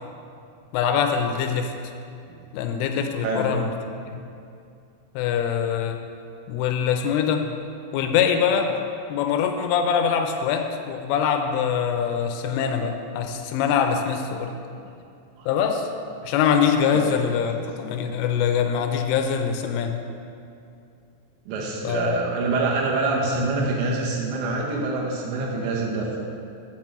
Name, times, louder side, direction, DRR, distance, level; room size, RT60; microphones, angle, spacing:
voice 1, 0.7-1.7 2.5-3.7 4.1-4.2 5.2-6.0 6.5-7.4 7.9-8.7 9.1-14.5 15.5-15.9 16.2-20.0 21.8-22.1, left 7 dB, 85° left, 5 dB, 3.1 m, -23 dB
voice 2, 21.5-26.3, right 3 dB, 75° right, -2 dB, 3.0 m, -25 dB
7.3 x 5.9 x 7.6 m, 2.5 s
omnidirectional pair, 5.8 m